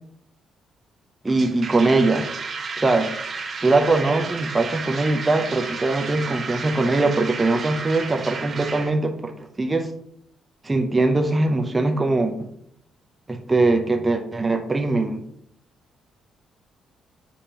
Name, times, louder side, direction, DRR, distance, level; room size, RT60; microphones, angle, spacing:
voice 1, 1.2-2.3 2.8-3.1 3.6-9.9 10.6-12.5 13.3-15.2, right 2 dB, 20° right, 4 dB, 0.7 m, -21 dB
sound 1, 1.3-8.9, right 4 dB, 45° right, 1.1 m, -32 dB
8.6 x 5.0 x 3.0 m, 0.70 s
cardioid pair, 90°, 0 cm